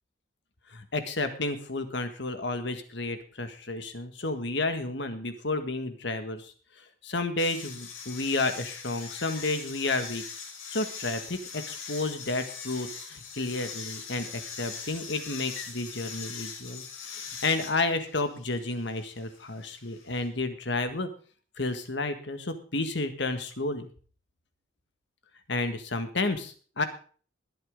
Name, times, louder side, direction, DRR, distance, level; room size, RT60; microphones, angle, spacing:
voice 1, 0.7-6.5 7.0-10.2 10.7-16.8 17.1-21.1 21.6-23.9 25.5-26.8, left 2 dB, 60° left, 8 dB, 1.8 m, -31 dB
sound 1, 7.4-20.3, left 6 dB, 90° left, 4.0 m, -41 dB
21.5 x 8.5 x 3.7 m, 0.40 s
head